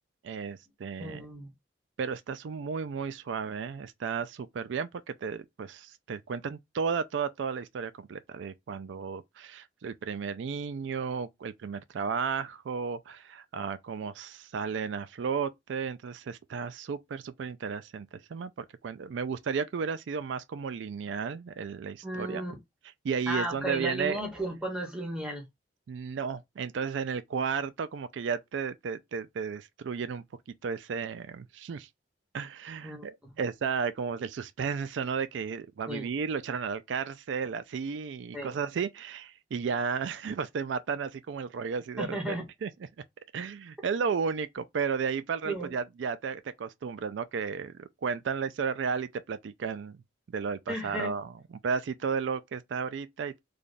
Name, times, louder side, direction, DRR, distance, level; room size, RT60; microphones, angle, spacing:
voice 1, 0.2-1.3 2.0-22.4 23.0-24.2 25.9-30.2 30.6-31.9 32.3-42.7 43.3-50.0 50.3-51.3 51.6-53.3, right 6 dB, 75° right, 0.4 m, -33 dB
voice 2, 1.0-1.5 22.0-22.6 23.3-25.4 32.8-33.4 35.9-36.1 38.3-38.6 42.0-42.5 45.4-45.7 50.7-51.1, right 1 dB, 5° right, 1.1 m, -34 dB
3.3 x 2.3 x 3.9 m
head